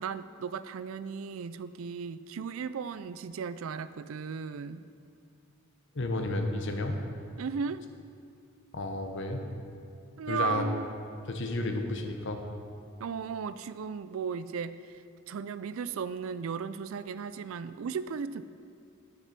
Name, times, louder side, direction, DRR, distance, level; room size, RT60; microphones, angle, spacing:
voice 1, 0.0-4.9 7.4-7.9 10.2-10.9 13.0-18.4, right 6 dB, 75° right, 14 dB, 0.4 m, -36 dB
voice 2, 5.9-7.0 8.7-9.4 10.3-10.7 11.3-12.4, left 2 dB, 60° left, 4 dB, 1.0 m, -32 dB
10.0 x 6.6 x 5.9 m, 2.4 s
head